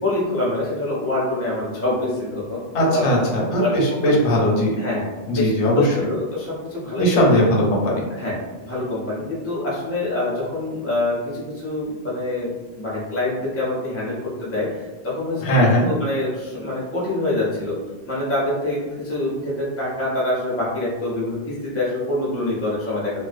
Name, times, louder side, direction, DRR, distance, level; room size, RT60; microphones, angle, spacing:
voice 1, 0.0-3.2 3.6-3.7 4.1-4.2 4.8-7.2 8.1-8.4 8.6-17.8 18.1-23.2, left 2 dB, 15° left, -7 dB, 0.5 m, -25 dB
voice 2, 2.7-4.8 5.3-6.1 7.0-8.0 15.4-15.9, equal, 90° left, -2 dB, 0.9 m, -19 dB
2.4 x 2.1 x 2.5 m, 1.2 s
omnidirectional pair, 1.1 m